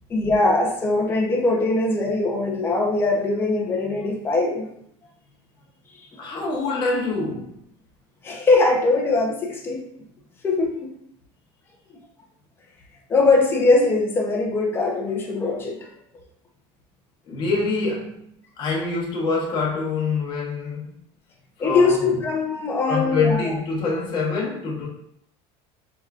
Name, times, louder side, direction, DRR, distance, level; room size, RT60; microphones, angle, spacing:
voice 1, 0.1-4.7 8.2-9.8 10.4-10.9 13.1-15.8 21.6-23.5, left 3 dB, 15° left, -1 dB, 0.7 m, -21 dB
voice 2, 6.2-7.6 17.2-18.3 18.6-21.0 21.6-22.1 22.9-24.9, left 4 dB, 30° left, -3 dB, 1.1 m, -25 dB
5.9 x 3.4 x 2.4 m, 0.74 s
cardioid pair, 180°, 14 cm